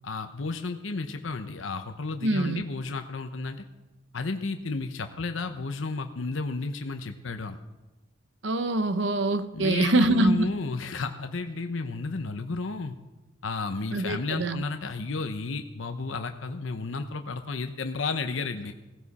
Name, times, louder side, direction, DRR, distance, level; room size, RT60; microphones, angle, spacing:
voice 1, 0.0-3.6 4.1-7.6 9.5-12.9 13.4-18.7, left 3 dB, 90° left, 7 dB, 0.8 m, -32 dB
voice 2, 2.2-2.6 8.4-10.5 13.9-14.6, right 2 dB, 65° right, 11 dB, 0.9 m, -24 dB
17.0 x 16.0 x 4.2 m, 1.1 s
head